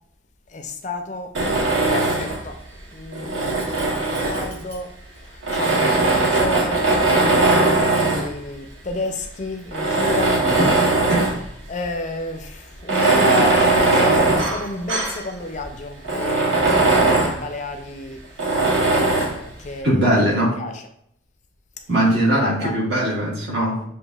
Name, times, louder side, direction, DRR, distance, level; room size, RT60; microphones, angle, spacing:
voice 1, 0.5-1.3 1.9-2.6 2.9-4.9 5.2-10.4 11.7-18.2 18.8-20.1 20.6-20.8 22.4-22.7, left 2 dB, 40° left, 5 dB, 0.4 m, -31 dB
Tools, 1.3-2.5 3.1-4.7 5.4-8.3 9.0-9.1 9.7-11.5 11.8-11.9 12.8-15.2 15.6-15.7 16.0-17.4 18.4-19.4, right 2 dB, 90° right, 1.0 m, -19 dB
voice 2, 19.8-20.6 21.9-23.8, right 1 dB, 65° right, -5 dB, 1.7 m, -20 dB
7.2 x 2.7 x 2.3 m, 0.71 s
head